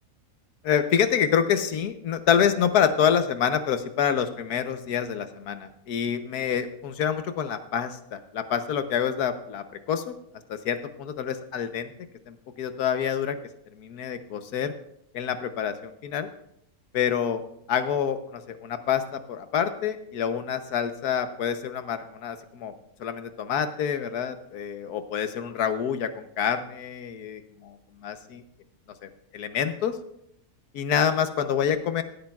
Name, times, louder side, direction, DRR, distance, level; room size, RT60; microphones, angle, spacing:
voice 1, 0.6-10.1 10.5-11.9 12.3-13.4 13.7-14.7 15.1-16.3 16.9-17.4 17.7-22.7 23.0-27.8 28.0-28.4 29.3-30.0 30.7-32.0, left 8 dB, 80° left, 9 dB, 1.4 m, -27 dB
16.0 x 13.0 x 2.4 m, 0.72 s
omnidirectional pair, 1.6 m